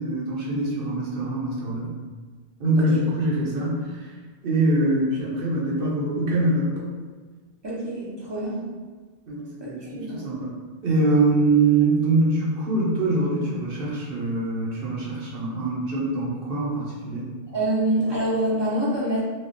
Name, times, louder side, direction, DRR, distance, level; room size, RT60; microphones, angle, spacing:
voice 1, 0.0-1.9 2.6-4.1 4.4-6.7 9.3-10.5 10.8-17.3, right 2 dB, 60° right, -5 dB, 0.9 m, -24 dB
voice 2, 7.6-8.6 9.6-10.1 17.5-19.2, right 1 dB, 30° right, -7 dB, 0.6 m, -25 dB
3.3 x 2.3 x 2.5 m, 1.4 s
omnidirectional pair, 1.1 m